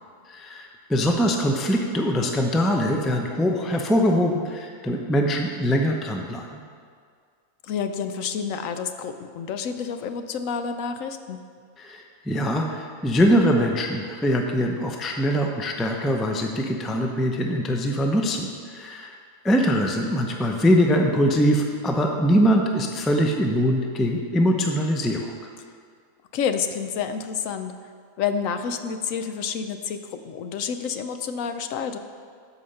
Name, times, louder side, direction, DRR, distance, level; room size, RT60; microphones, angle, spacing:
voice 1, 0.3-6.6 11.8-19.2 19.4-25.3, equal, ahead, 2 dB, 0.4 m, -22 dB
voice 2, 7.6-11.4 26.3-27.7 28.2-32.0, left 6 dB, 70° left, 8 dB, 0.9 m, -29 dB
13.0 x 5.0 x 5.6 m, 2.1 s
omnidirectional pair, 1.5 m